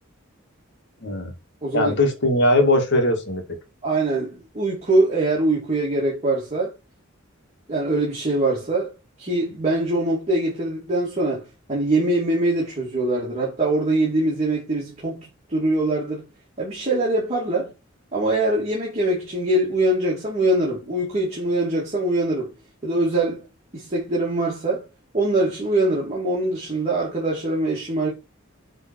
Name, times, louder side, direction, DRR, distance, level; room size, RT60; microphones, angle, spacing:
voice 1, 1.0-1.3 1.7-3.4, left 1 dB, 60° left, 2.0 m, -20 dB
voice 2, 1.6-1.9 3.8-6.7 7.7-8.9 9.2-16.2 16.6-17.7 18.1-22.5 22.8-23.5 23.7-24.9 25.1-28.1, right 2 dB, 30° right, 2.5 m, -23 dB
8.8 x 4.0 x 4.4 m
head